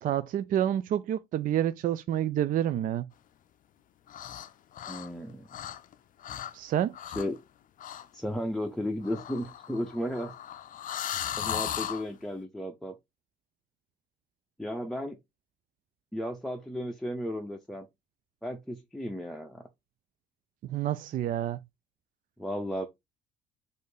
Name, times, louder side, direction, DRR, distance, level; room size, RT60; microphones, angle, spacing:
voice 1, 0.0-3.1 6.5-6.9 20.7-21.6, right 11 dB, 45° right, 0.4 m, -28 dB
sound 1, 4.1-4.5 4.7-5.9 6.2-6.5 6.9-7.4 7.8-8.1 9.0-12.0, left 10 dB, 45° left, 0.5 m, -36 dB
voice 2, 4.9-5.5 7.2-7.4 8.1-10.4 11.4-13.0 14.6-15.2 16.1-17.9 18.4-19.7 22.4-22.9, equal, ahead, 0.7 m, -34 dB
4.2 x 2.6 x 4.9 m
supercardioid pair, 75°, 19 cm